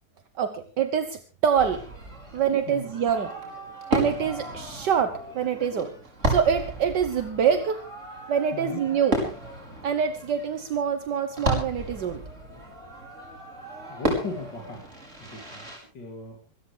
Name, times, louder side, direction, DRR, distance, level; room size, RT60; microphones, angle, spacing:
voice 1, 0.4-1.9 2.3-3.3 3.9-5.9 6.3-7.8 8.3-9.2 9.8-12.2, right 7 dB, 75° right, 9 dB, 1.7 m, -25 dB
Fireworks, 1.5-15.8, right 1 dB, 40° right, 5.6 m, -33 dB
voice 2, 13.9-14.8 15.3-15.7 15.9-16.4, left 3 dB, 70° left, 0 dB, 3.5 m, -37 dB
25.5 x 13.5 x 3.3 m, 0.34 s
omnidirectional pair, 1.9 m